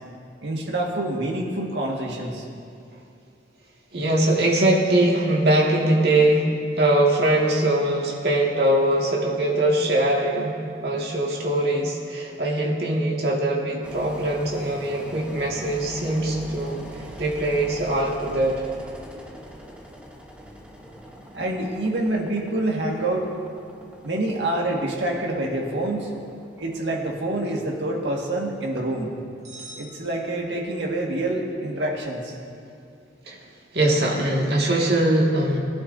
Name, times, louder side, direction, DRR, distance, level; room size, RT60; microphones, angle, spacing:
voice 1, 0.4-2.4 21.3-23.3 24.0-26.1 26.6-29.1 29.8-32.3, right 1 dB, 85° right, 0 dB, 1.7 m, -26 dB
voice 2, 3.9-6.5 6.8-16.8 17.2-18.6 33.3-33.4 33.7-35.6, right 1 dB, 65° right, -2 dB, 2.0 m, -22 dB
Engine, 13.8-30.7, equal, 5° right, 0.9 m, -43 dB
sound 1, 29.4-31.0, right 2 dB, 40° right, 2.4 m, -45 dB
21.0 x 11.5 x 2.7 m, 2.4 s
head